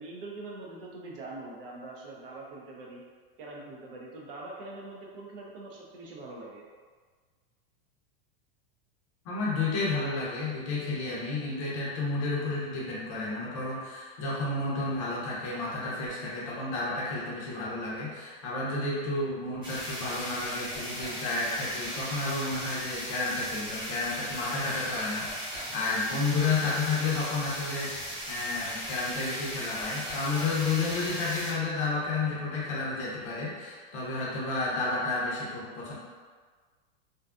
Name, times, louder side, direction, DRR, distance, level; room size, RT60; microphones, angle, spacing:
voice 1, 0.0-3.0 3.4-6.6, right 2 dB, 65° right, -2 dB, 0.7 m, -43 dB
voice 2, 9.2-35.9, left 3 dB, 30° left, -6 dB, 0.5 m, -31 dB
sound 1, 19.6-31.5, equal, 15° right, 0.6 m, -37 dB
2.6 x 2.2 x 2.4 m, 1.5 s
supercardioid pair, 175°, 30 cm